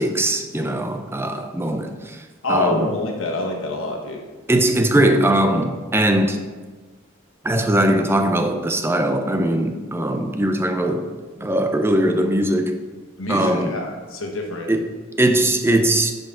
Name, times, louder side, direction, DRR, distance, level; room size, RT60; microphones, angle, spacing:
voice 1, 0.0-2.9 4.5-6.4 7.4-11.1 11.4-12.8 13.3-13.8 14.7-16.1, right 1 dB, 10° right, 0.5 m, -20 dB
voice 2, 2.4-4.2 13.2-14.7, left 2 dB, 75° left, 1.4 m, -26 dB
10.0 x 5.3 x 3.7 m
head